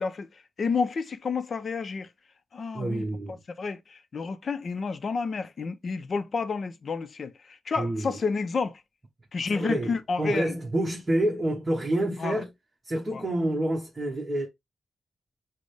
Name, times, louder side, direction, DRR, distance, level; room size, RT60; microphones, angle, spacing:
voice 1, 0.0-2.1 2.5-8.8 9.3-10.5 12.2-12.4 13.1-13.2, left 4 dB, 55° left, 0.5 m, -30 dB
voice 2, 2.7-3.4 7.8-8.2 9.5-12.5 12.8-14.5, right 1 dB, 25° right, 1.1 m, -28 dB
6.1 x 2.1 x 3.3 m
wide cardioid pair, 140°, 0 cm